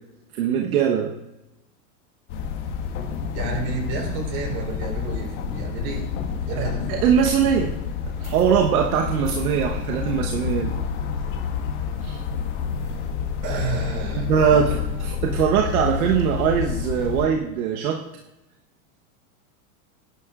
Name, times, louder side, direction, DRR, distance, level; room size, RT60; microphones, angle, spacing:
voice 1, 0.3-1.1 6.6-7.8 8.2-10.7 12.0-12.2 14.1-18.0, right 8 dB, 75° right, 2 dB, 1.2 m, -22 dB
sound 1, 2.3-17.3, left 7 dB, 55° left, 1.7 m, -28 dB
voice 2, 3.3-6.0 6.5-6.9 12.8-13.0 13.4-14.8, right 4 dB, 50° right, 1 dB, 4.3 m, -31 dB
20.0 x 11.0 x 2.5 m, 0.95 s
supercardioid pair, 160°, 44 cm